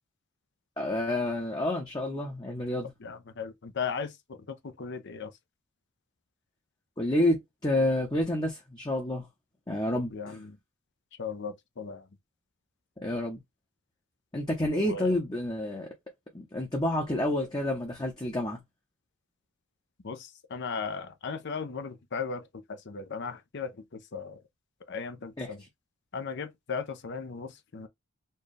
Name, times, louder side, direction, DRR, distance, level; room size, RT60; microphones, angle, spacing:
voice 1, 0.8-2.9 7.0-9.3 9.7-10.4 13.0-13.4 14.3-15.9 16.3-18.6 25.4-25.5, left 1 dB, 20° left, 0.8 m, -29 dB
voice 2, 3.0-5.3 10.1-10.6 11.2-12.0 14.8-15.2 20.0-24.4 24.9-25.6 26.1-27.9, left 5 dB, 55° left, 0.6 m, -37 dB
4.4 x 2.3 x 3.2 m
head